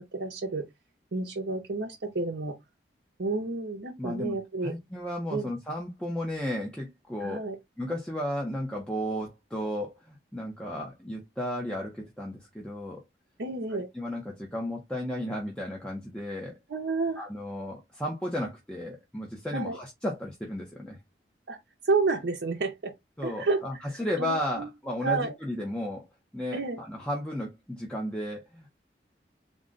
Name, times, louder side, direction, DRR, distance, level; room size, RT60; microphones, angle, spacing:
voice 1, 0.1-0.7 1.1-2.6 3.2-4.7 5.3-5.5 7.2-7.6 13.4-13.9 16.7-17.3 19.5-19.8 21.5-21.6 21.8-22.9 23.2-23.6 23.9-24.7 25.0-25.3 26.5-26.8, right 3 dB, 85° right, 0.7 m, -30 dB
voice 2, 4.0-4.4 4.6-7.4 7.8-13.0 13.7-16.6 17.2-21.0 23.2-26.0 26.3-28.7, left 1 dB, 5° left, 0.6 m, -34 dB
3.8 x 2.1 x 3.7 m
head